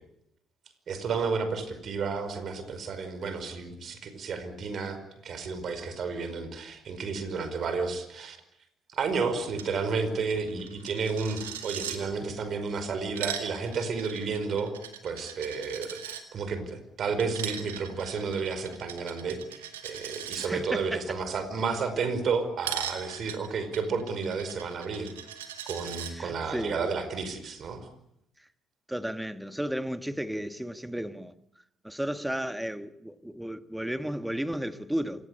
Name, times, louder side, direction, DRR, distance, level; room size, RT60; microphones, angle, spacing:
voice 1, 0.9-8.4 8.9-14.7 15.0-25.1 25.7-27.9, right 5 dB, 55° right, 5.2 m, -32 dB
Coin (dropping), 9.5-9.7 10.0-10.1 10.3-12.0 12.9-16.2 17.2-20.5 22.6-26.1, right 9 dB, 85° right, 2.2 m, -39 dB
voice 2, 20.5-21.0 25.9-26.9 28.9-31.3 31.8-35.3, equal, 5° right, 1.7 m, -33 dB
27.0 x 17.5 x 9.7 m
hypercardioid pair, 50°, 0 cm